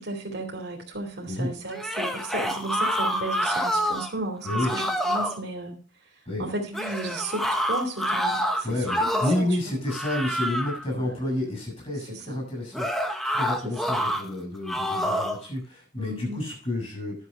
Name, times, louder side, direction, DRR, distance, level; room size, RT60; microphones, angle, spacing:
voice 1, 0.0-5.7 6.4-9.7 10.9-11.1 12.1-12.4 13.6-13.9 16.0-16.4, right 2 dB, 55° right, -1 dB, 2.6 m, -34 dB
sound 1, 1.7-4.1 4.4-5.4 6.7-9.5 9.9-10.8 12.7-14.2 14.7-15.4, equal, ahead, 1.1 m, -27 dB
voice 2, 8.6-17.1, left 1 dB, 30° left, 0 dB, 7.3 m, -30 dB
11.0 x 7.4 x 5.4 m, 0.38 s
head